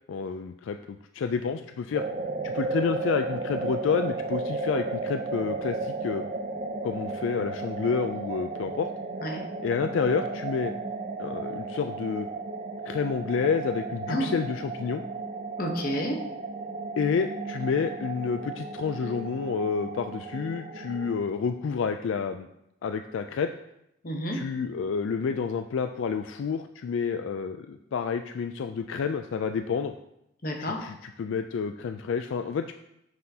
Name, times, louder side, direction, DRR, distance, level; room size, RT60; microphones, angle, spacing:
voice 1, 0.1-2.0 2.4-6.2 6.8-8.9 9.6-10.7 11.2-12.3 12.9-15.0 17.0-22.5 22.8-23.5 24.3-29.9 30.6-32.8, left 6 dB, 75° left, 8 dB, 0.3 m, -29 dB
sound 1, 1.9-21.2, right 3 dB, 35° right, 0.5 m, -34 dB
voice 2, 9.2-9.5 14.1-14.3 15.6-16.3 24.0-24.5 30.4-30.9, equal, 45° left, 2 dB, 1.0 m, -30 dB
9.4 x 6.5 x 2.8 m, 0.83 s
head